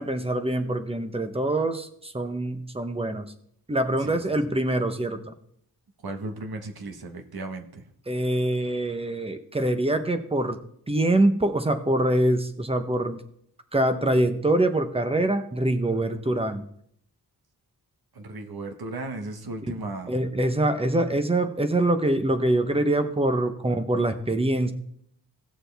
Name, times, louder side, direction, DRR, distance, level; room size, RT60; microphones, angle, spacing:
voice 1, 0.0-3.3 3.7-5.3 8.1-10.6 10.9-13.2 13.7-16.7 20.1-24.7, right 1 dB, 15° right, 8 dB, 0.8 m, -24 dB
voice 2, 4.0-4.5 6.0-7.8 16.0-16.2 18.1-20.1, right 2 dB, 65° right, 5 dB, 1.3 m, -36 dB
17.0 x 6.8 x 3.4 m, 0.68 s
wide cardioid pair, 150°, 40 cm